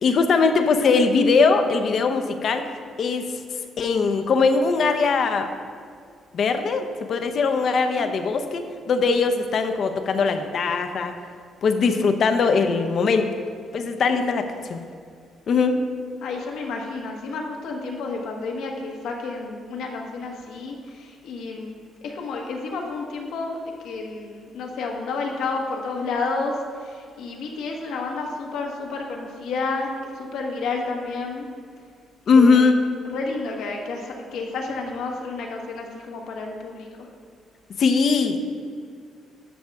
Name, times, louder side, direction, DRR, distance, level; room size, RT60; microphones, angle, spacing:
voice 1, 0.0-2.7 3.0-3.3 3.8-5.5 6.3-11.1 11.6-13.3 13.7-14.8 15.5-15.8 32.3-32.8 37.8-38.4, left 4 dB, 60° left, 7 dB, 0.8 m, -20 dB
voice 2, 16.2-23.6 23.8-29.9 30.1-31.5 32.3-32.8 33.0-37.1, left 3 dB, 80° left, 1 dB, 1.4 m, -31 dB
11.0 x 6.4 x 3.5 m, 2.2 s
cardioid pair, 90°, 0 cm